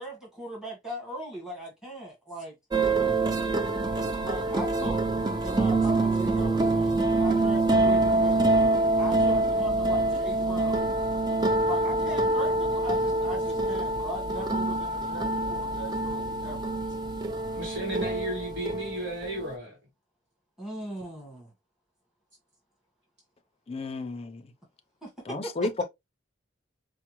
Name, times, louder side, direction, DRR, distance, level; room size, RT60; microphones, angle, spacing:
voice 1, 0.0-2.5 4.2-5.0 5.4-10.8 11.6-16.7 20.6-21.5 25.0-25.7, equal, 5° right, 1.2 m, -39 dB
sound 1, 2.7-19.5, right 2 dB, 20° right, 0.4 m, -26 dB
voice 2, 17.5-19.8, right 1 dB, 60° right, 1.4 m, -34 dB
voice 3, 23.7-24.4 25.3-25.8, left 3 dB, 30° left, 0.5 m, -32 dB
4.6 x 2.1 x 2.9 m
head